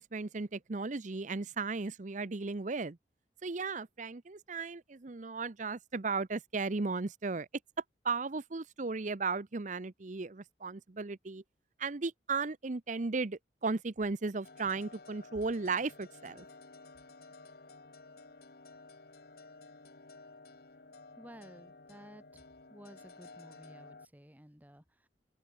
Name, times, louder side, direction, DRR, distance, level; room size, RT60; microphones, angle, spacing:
voice 1, 0.0-3.0 3.4-7.5 8.0-11.4 11.8-16.4, right 4 dB, 45° right, 0.7 m, -35 dB
sound 1, 14.4-24.1, left 3 dB, 60° left, 1.5 m, -54 dB
voice 2, 21.2-22.4 22.7-25.1, equal, 10° right, 2.0 m, -54 dB
open air
head